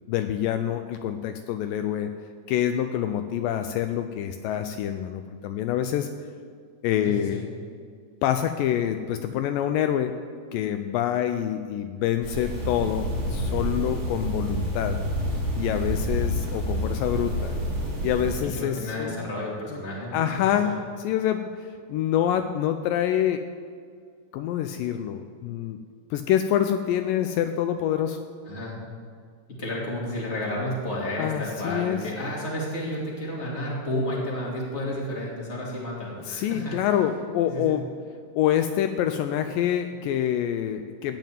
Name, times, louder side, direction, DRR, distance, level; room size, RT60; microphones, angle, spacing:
voice 1, 0.1-2.1 2.5-6.1 6.8-7.4 8.2-10.2 10.5-15.0 15.6-17.5 18.0-19.3 19.7-19.8 20.1-20.7 21.0-23.4 24.3-25.8 26.1-28.2 31.2-32.0 36.3-37.8 38.4-41.2, left 10 dB, 80° left, 8 dB, 2.2 m, -26 dB
voice 2, 7.0-7.4 18.6-20.8 28.4-28.8 29.6-36.8 37.5-37.8, left 1 dB, 20° left, -4 dB, 2.6 m, -31 dB
sound 1, 12.2-18.4, equal, 40° right, 5.1 m, -28 dB
15.0 x 5.4 x 9.2 m, 2.1 s
omnidirectional pair, 4.1 m